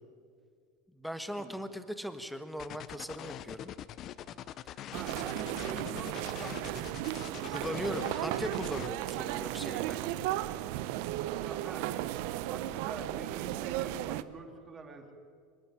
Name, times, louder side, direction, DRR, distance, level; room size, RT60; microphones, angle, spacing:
voice 1, 0.9-3.7 5.2-5.3 7.5-10.0, equal, ahead, 10 dB, 1.5 m, -39 dB
sound 1, 2.6-8.9, left 11 dB, 45° left, 0.7 m, -44 dB
voice 2, 4.9-7.0 7.4-7.8 11.4-12.0 12.5-15.1, right 3 dB, 25° right, 3 dB, 2.9 m, -44 dB
sound 2, 4.9-14.2, right 14 dB, 65° right, 0.8 m, -35 dB
25.5 x 10.5 x 9.9 m, 2.1 s
supercardioid pair, 120°, 0 cm